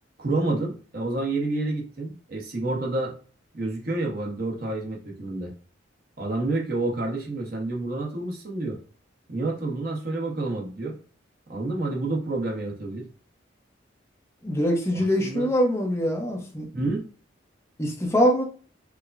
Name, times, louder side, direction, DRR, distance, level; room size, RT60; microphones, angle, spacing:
voice 1, 0.2-3.2 3.5-5.5 6.2-8.8 9.3-10.9 11.5-13.1 14.9-15.5 16.7-17.0, right 2 dB, 50° right, -1 dB, 0.9 m, -29 dB
voice 2, 14.4-16.7 17.8-18.4, equal, 15° left, 0 dB, 0.7 m, -23 dB
4.7 x 2.1 x 2.5 m, 0.39 s
head